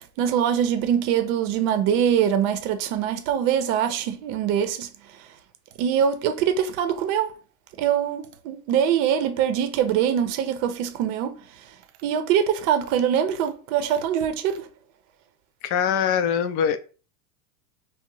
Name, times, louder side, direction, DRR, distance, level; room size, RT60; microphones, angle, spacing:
voice 1, 0.2-4.9 5.8-7.3 7.8-11.4 12.0-14.7, right 9 dB, 55° right, 0.7 m, -23 dB
voice 2, 15.6-16.8, left 8 dB, 45° left, 0.5 m, -22 dB
2.8 x 2.1 x 3.7 m
supercardioid pair, 115°, 48 cm